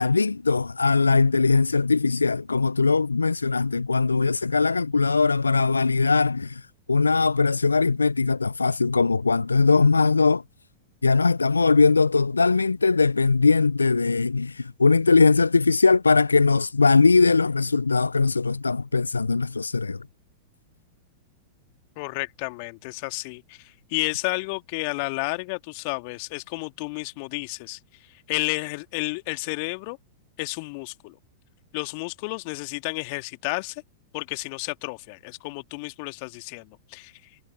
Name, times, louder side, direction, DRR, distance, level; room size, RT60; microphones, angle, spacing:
voice 1, 0.0-10.4 11.0-20.0, left 4 dB, 85° left, 0.4 m, -20 dB
voice 2, 22.0-27.8 28.3-30.0 30.4-31.2 31.7-33.8 34.1-37.1, left 30 dB, 50° left, 1.9 m, -31 dB
figure-of-eight pair, 95°, 0 cm